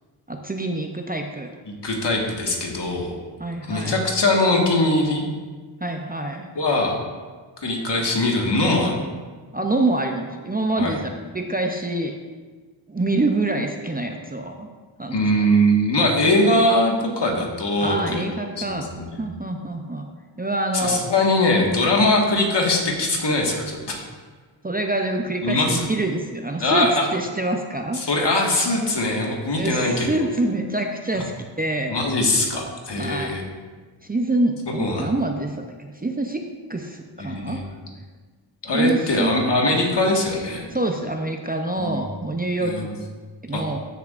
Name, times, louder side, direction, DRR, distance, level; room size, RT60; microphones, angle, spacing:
voice 1, 0.3-1.6 3.4-4.0 5.8-6.5 9.5-11.1 11.3-12.2 12.9-14.7 15.0-15.2 15.5-15.6 17.8-20.1 20.4-21.0 24.6-28.0 29.5-32.0 33.0-33.4 34.0-37.6 38.7-39.3 40.7-42.9 43.4-43.8, right 2 dB, 20° right, 3 dB, 0.6 m, -26 dB
voice 2, 1.7-3.2 3.7-5.2 6.5-7.0 7.6-8.9 10.8-11.0 15.1-19.2 20.7-24.1 25.4-25.9 26.6-27.1 27.9-30.1 31.1-31.2 31.9-33.4 34.8-35.1 37.2-37.7 38.6-40.7 41.8-42.2 42.6-42.9 43.5-43.6, left 1 dB, 60° left, 0 dB, 1.7 m, -21 dB
14.0 x 6.9 x 2.5 m, 1.4 s
wide cardioid pair, 95°, 47 cm